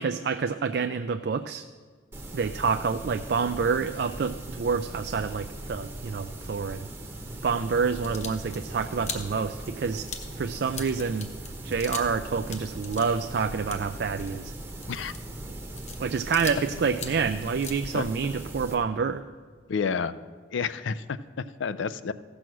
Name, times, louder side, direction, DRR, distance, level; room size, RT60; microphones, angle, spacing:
voice 1, 0.0-1.7 2.3-6.9 7.4-10.1 10.3-11.3 11.6-14.5 16.0-19.2, right 5 dB, 55° right, 8 dB, 0.3 m, -28 dB
sound 1, 2.1-18.7, right 1 dB, 15° right, 0.9 m, -40 dB
sound 2, 8.0-12.2 12.4-16.7 16.9-18.4, left 5 dB, 35° left, 0.9 m, -41 dB
voice 2, 19.7-20.1 20.5-22.1, left 5 dB, 75° left, 15 dB, 0.4 m, -30 dB
15.5 x 6.2 x 6.2 m, 1.5 s
head